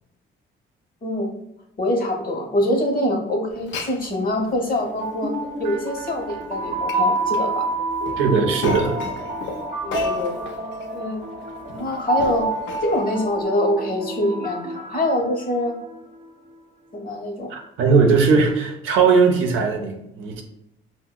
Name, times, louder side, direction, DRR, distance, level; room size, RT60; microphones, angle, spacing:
voice 1, 1.0-1.3 1.8-5.3 5.6-7.7 9.8-10.4 10.9-11.2 11.7-12.5 12.8-15.8 16.9-17.5, left 1 dB, 45° left, 2 dB, 0.8 m, -24 dB
Glass, 3.5-13.4, left 4 dB, 65° left, 0.5 m, -37 dB
sound 1, 4.8-15.9, right 2 dB, 35° right, 0.5 m, -28 dB
voice 2, 8.2-9.0 17.5-20.4, right 5 dB, 90° right, 3 dB, 0.6 m, -19 dB
4.7 x 2.1 x 2.2 m, 0.84 s
cardioid pair, 90°, 20 cm